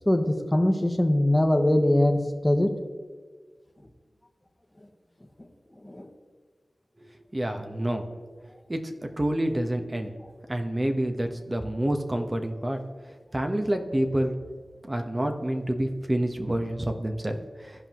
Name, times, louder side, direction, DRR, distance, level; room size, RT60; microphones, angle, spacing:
voice 1, 0.1-2.7 5.8-6.1, left 1 dB, 20° left, 4 dB, 1.2 m, -22 dB
voice 2, 7.3-8.0 8.7-8.8 9.2-10.1 10.5-12.8 13.3-14.3 14.8-17.4, right 1 dB, 30° right, 5 dB, 1.1 m, -27 dB
15.5 x 5.4 x 3.0 m, 1.5 s
cardioid pair, 40°, 0 cm